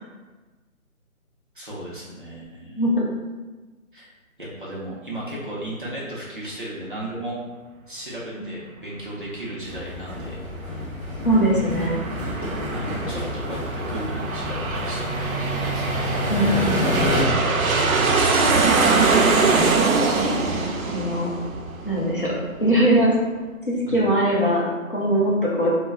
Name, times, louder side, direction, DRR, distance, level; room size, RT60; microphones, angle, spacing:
voice 1, 1.5-2.8 3.9-4.0 4.4-7.4 7.9-10.4 12.7-16.1 16.5-16.6 23.9-24.0, right 1 dB, 40° right, -7 dB, 0.6 m, -35 dB
voice 2, 2.8-3.1 11.2-12.0 16.3-17.1 20.1-21.3 21.9-22.3 22.6-23.1 23.7-25.7, right 1 dB, 40° left, -7 dB, 0.5 m, -21 dB
sound 1, 9.6-17.2, left 1 dB, 15° left, 1.1 m, -28 dB
Aircraft, 11.4-22.6, right 3 dB, 75° right, 0.6 m, -23 dB
2.3 x 2.2 x 4.0 m, 1.2 s
hypercardioid pair, 175°, 42 cm